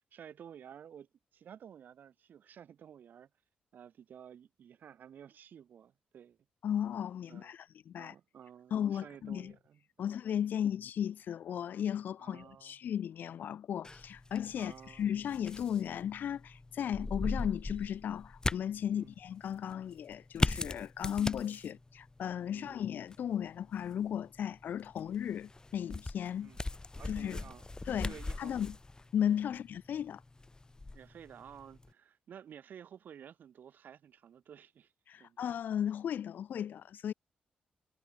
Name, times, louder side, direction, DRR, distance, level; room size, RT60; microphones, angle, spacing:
voice 1, 0.1-3.3 3.7-6.4 7.3-7.5 8.0-10.1 10.5-10.7 12.2-12.7 14.5-15.1 16.9-17.1 18.9-19.1 21.7-21.8 22.5-22.8 26.4-26.6 27.0-27.7 28.0-28.6 29.5-29.6 30.9-34.9 35.2-35.5, right 8 dB, 75° right, 3.3 m, -53 dB
voice 2, 6.6-8.1 8.7-9.5 10.0-26.5 27.1-27.4 27.9-28.8 29.1-30.2 35.1-37.1, left 9 dB, 80° left, 0.7 m, -35 dB
sound 1, 13.8-31.9, left 2 dB, 25° left, 1.4 m, -40 dB
cardioid pair, 65°, 3 cm